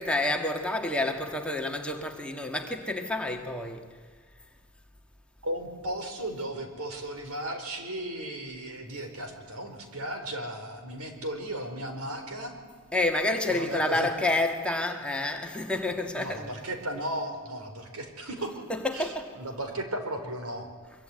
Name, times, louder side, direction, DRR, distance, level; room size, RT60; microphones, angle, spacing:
voice 1, 0.0-3.8 12.9-16.5 18.7-19.3, left 2 dB, 5° left, 1.8 m, -29 dB
voice 2, 5.4-12.5 13.5-14.1 16.1-18.5 18.9-20.7, right 1 dB, 85° right, 4.4 m, -35 dB
24.0 x 23.5 x 9.8 m
head